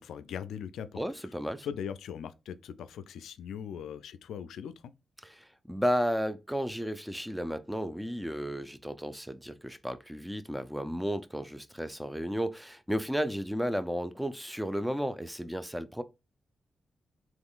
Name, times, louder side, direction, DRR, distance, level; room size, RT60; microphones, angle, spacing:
voice 1, 0.0-1.0 1.6-4.7, left 8 dB, 85° left, 0.4 m, -40 dB
voice 2, 1.0-1.7 5.2-16.0, equal, 5° right, 0.5 m, -33 dB
3.6 x 3.0 x 2.4 m
supercardioid pair, 55°, 0 cm